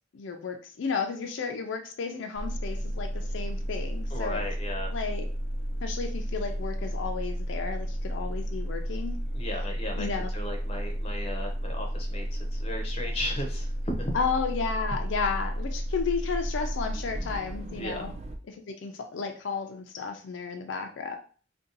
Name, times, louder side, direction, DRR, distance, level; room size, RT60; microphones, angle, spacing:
voice 1, 0.1-4.4 4.9-5.2 5.8-9.2 10.0-10.3 14.1-18.1 18.5-21.2, left 5 dB, 75° left, 4 dB, 0.4 m, -33 dB
sound 1, 2.4-18.4, equal, 35° right, 0.4 m, -32 dB
voice 2, 4.1-4.9 9.3-10.1 10.3-14.1 17.7-18.0, left 1 dB, 30° left, 2 dB, 0.6 m, -35 dB
2.6 x 2.2 x 3.8 m, 0.40 s
head